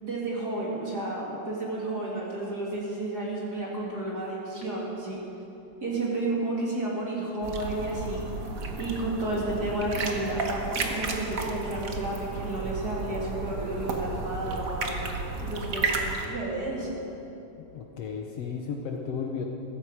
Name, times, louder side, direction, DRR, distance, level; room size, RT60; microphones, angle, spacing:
voice 1, 0.0-5.2 5.8-8.3 8.8-14.9 15.4-15.9 16.3-17.0, right 2 dB, 35° right, -4 dB, 2.7 m, -31 dB
sound 1, 7.4-16.3, right 3 dB, 75° right, 0.7 m, -33 dB
voice 2, 17.7-19.5, left 6 dB, 70° left, 2 dB, 1.8 m, -34 dB
15.5 x 14.0 x 5.0 m, 2.9 s
omnidirectional pair, 3.3 m